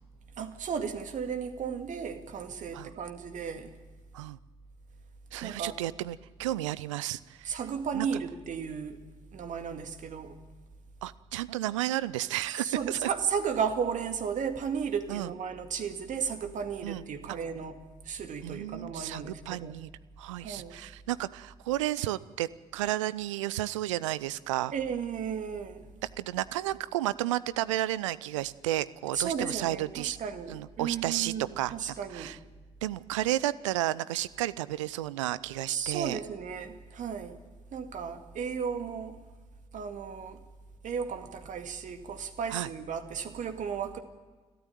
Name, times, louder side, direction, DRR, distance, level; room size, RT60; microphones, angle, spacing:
voice 1, 0.4-3.7 5.4-5.7 7.4-9.0 9.3-10.3 12.5-17.8 18.1-19.8 20.4-20.8 24.7-25.9 29.1-32.3 35.7-37.4 37.7-39.2 39.7-40.4 40.8-44.0, right 7 dB, 50° right, 2.2 m, -34 dB
voice 2, 5.3-7.6 7.9-8.1 11.0-13.1 15.1-15.3 16.8-17.0 18.4-19.9 20.2-24.7 26.0-30.2 30.5-31.7 32.1-32.4 32.8-36.2 42.5-42.7, right 15 dB, 75° right, 0.6 m, -32 dB
29.5 x 13.5 x 9.2 m
figure-of-eight pair, 40°, 16 cm